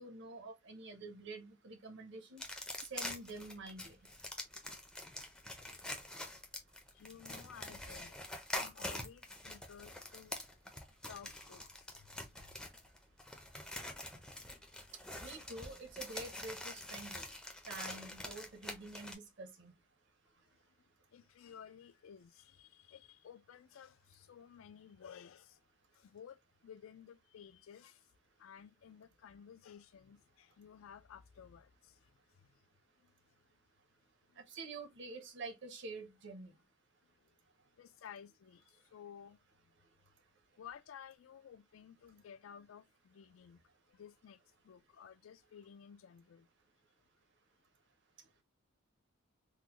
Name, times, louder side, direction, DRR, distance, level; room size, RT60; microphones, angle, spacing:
voice 1, 0.0-2.4 2.8-4.0 15.2-17.2 17.7-19.7 34.5-36.5, right 3 dB, 55° right, 0.7 m, -48 dB
sound 1, 2.4-19.1, left 1 dB, 5° left, 0.5 m, -45 dB
voice 2, 6.9-8.2 8.5-10.4 11.1-12.5 21.1-25.6 25.9-28.0 28.4-32.0 33.0-33.1 34.3-34.4 37.8-39.4 40.6-43.6 43.9-44.4 44.6-46.5, left 8 dB, 70° left, 0.3 m, -55 dB
3.7 x 2.1 x 2.9 m
head